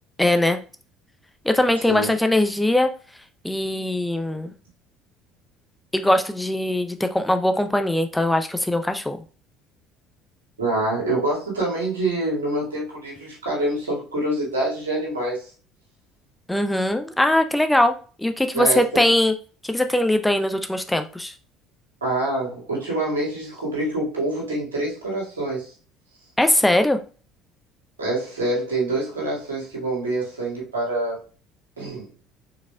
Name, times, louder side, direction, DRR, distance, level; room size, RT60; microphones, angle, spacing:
voice 1, 0.2-0.6 1.4-2.9 3.4-4.5 5.9-9.2 16.5-19.3 19.6-21.3 26.4-27.0, left 1 dB, 5° left, 7 dB, 0.6 m, -21 dB
voice 2, 10.6-15.5 18.5-19.0 22.0-25.7 28.0-31.2 31.8-32.1, right 2 dB, 90° right, -5 dB, 1.9 m, -26 dB
4.8 x 4.1 x 2.3 m, 0.37 s
hypercardioid pair, 60°, 0 cm